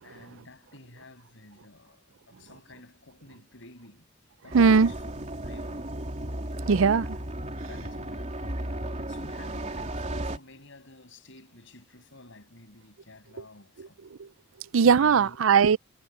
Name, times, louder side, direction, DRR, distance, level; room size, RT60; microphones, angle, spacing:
voice 1, 0.0-4.1 4.4-5.1 5.4-5.9 7.7-14.0 14.9-15.4, left 2 dB, 65° left, 7.7 m, -51 dB
sound 1, 4.5-10.4, right 1 dB, 35° right, 3.6 m, -34 dB
voice 2, 4.5-4.9 6.6-7.2 14.2-14.3 14.7-15.8, right 5 dB, 70° right, 0.5 m, -19 dB
head